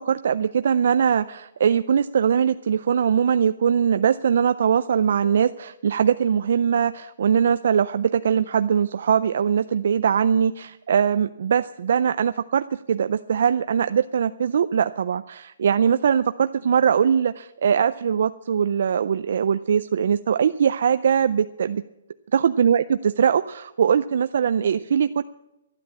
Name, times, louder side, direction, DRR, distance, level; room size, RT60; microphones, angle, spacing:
voice 1, 0.0-21.8 22.3-25.2, right 7 dB, 50° right, 12 dB, 0.4 m, -21 dB
12.5 x 10.5 x 8.5 m, 0.97 s
hypercardioid pair, 180°, 0 cm